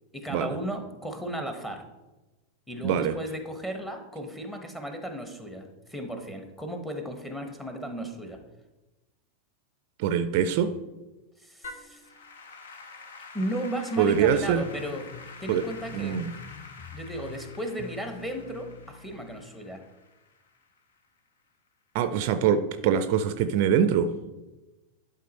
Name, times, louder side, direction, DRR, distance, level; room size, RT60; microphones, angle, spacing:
voice 1, 0.1-1.8 2.7-8.4 11.4-12.0 13.3-15.1 15.4-16.2 16.9-19.8, right 1 dB, 5° left, 4 dB, 1.1 m, -35 dB
voice 2, 2.8-3.2 10.0-10.7 14.0-14.6 15.5-15.6 15.9-16.3 21.9-24.1, right 8 dB, 45° right, 10 dB, 0.4 m, -24 dB
Applause / Keyboard (musical), 11.6-21.0, left 4 dB, 60° left, 0.8 m, -47 dB
sound 1, 14.1-19.4, left 7 dB, 25° left, 0.9 m, -46 dB
11.5 x 3.8 x 4.2 m, 1.1 s
figure-of-eight pair, 90°, 0 cm